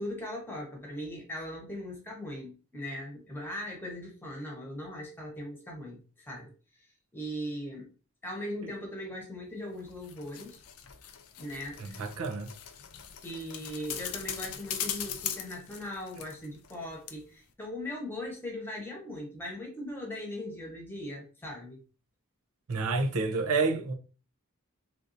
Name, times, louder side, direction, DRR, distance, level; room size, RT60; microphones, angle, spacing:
voice 1, 0.0-6.5 7.1-7.9 8.2-10.6 11.4-12.0 13.2-21.8, left 1 dB, 10° left, 1.0 m, -39 dB
sound 1, 9.8-16.8 17.1-17.2, left 9 dB, 75° left, 0.5 m, -40 dB
voice 2, 11.8-12.5 22.7-23.9, right 3 dB, 85° right, 0.6 m, -29 dB
3.5 x 2.6 x 2.5 m
head